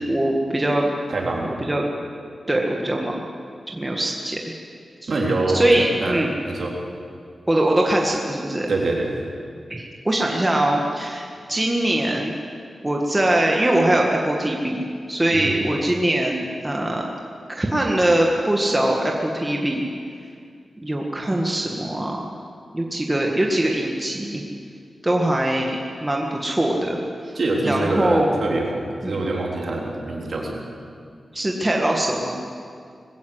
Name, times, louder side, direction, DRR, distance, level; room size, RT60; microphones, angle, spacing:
voice 1, 0.1-0.9 1.5-1.9 2.5-3.1 3.7-4.5 5.0-5.1 5.5-6.3 7.5-8.7 9.7-12.3 12.8-17.1 17.5-19.9 20.8-22.3 22.7-24.4 25.0-27.0 27.6-28.3 29.0-29.2 31.3-32.4, right 1 dB, 15° right, -1 dB, 1.8 m, -22 dB
voice 2, 1.1-1.6 5.1-6.7 8.7-9.1 15.3-15.5 27.3-30.7, right 2 dB, 55° right, -1 dB, 3.8 m, -25 dB
21.0 x 16.0 x 8.2 m, 2.2 s
wide cardioid pair, 125°, 0 cm